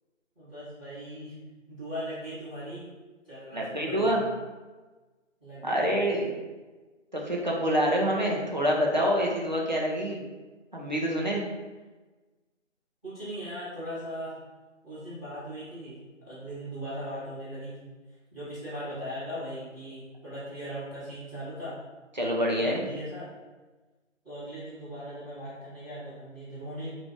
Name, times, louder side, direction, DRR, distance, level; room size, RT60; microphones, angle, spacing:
voice 1, 0.3-1.3 1.7-2.8 3.2-4.2 5.4-6.1 13.0-14.3 14.8-17.8 18.3-21.8 22.6-23.3 24.2-26.9, equal, ahead, -18 dB, 1.4 m, -39 dB
voice 2, 3.5-4.2 5.6-6.3 7.1-10.2 10.7-11.4 22.2-22.8, equal, 35° right, -3 dB, 0.5 m, -26 dB
3.2 x 2.5 x 3.7 m, 1.2 s
figure-of-eight pair, 165°, 39 cm